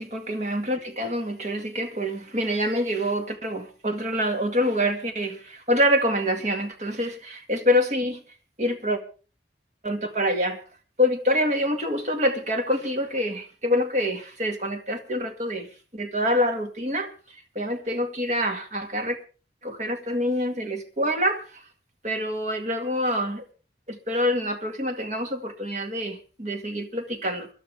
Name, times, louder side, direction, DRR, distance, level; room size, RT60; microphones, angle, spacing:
voice 1, 0.0-8.2 8.6-9.0 9.8-10.6 11.0-15.7 15.9-19.2 19.6-21.6 22.0-23.4 23.9-27.5, equal, 40° right, 2.0 m, -26 dB
24.5 x 12.0 x 3.5 m
head